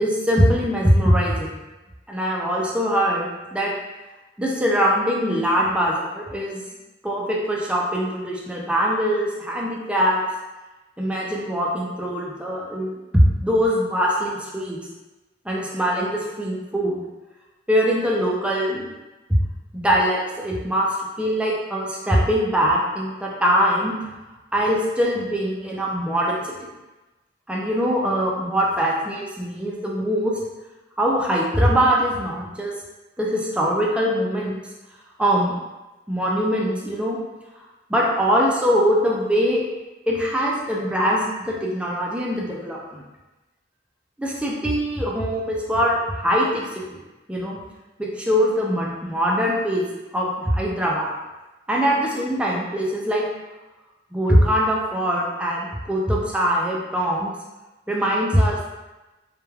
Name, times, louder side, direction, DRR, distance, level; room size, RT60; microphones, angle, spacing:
voice 1, 0.0-1.5 2.1-3.7 4.4-6.6 7.0-10.2 11.0-14.8 15.5-17.0 17.7-18.9 19.7-20.9 21.2-23.9 24.5-26.5 27.5-30.4 31.0-32.7 33.2-34.6 35.2-35.6 36.1-37.2 37.9-39.6 40.1-43.0 44.2-47.0 47.3-47.6 48.0-49.8 50.1-51.1 51.7-53.3 54.1-57.3 57.9-58.6, equal, 5° right, -3 dB, 0.4 m, -22 dB
3.0 x 2.2 x 2.2 m, 1.1 s
head